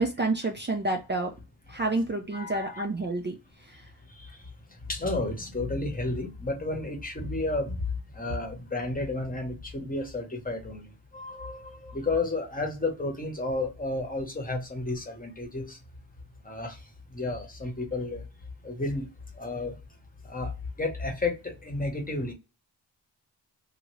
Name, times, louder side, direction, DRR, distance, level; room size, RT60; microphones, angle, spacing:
voice 1, 0.0-1.3 1.7-3.3 3.6-3.9, right 2 dB, 25° right, 0.5 m, -29 dB
voice 2, 2.3-2.8 4.2-4.3 4.9-7.8 8.1-15.8 16.4-16.8 17.1-18.2 18.6-19.1 19.4-19.8 20.2-20.5 20.8-22.3, left 2 dB, 20° left, 1.0 m, -32 dB
2.8 x 2.5 x 3.1 m
wide cardioid pair, 85°, 42 cm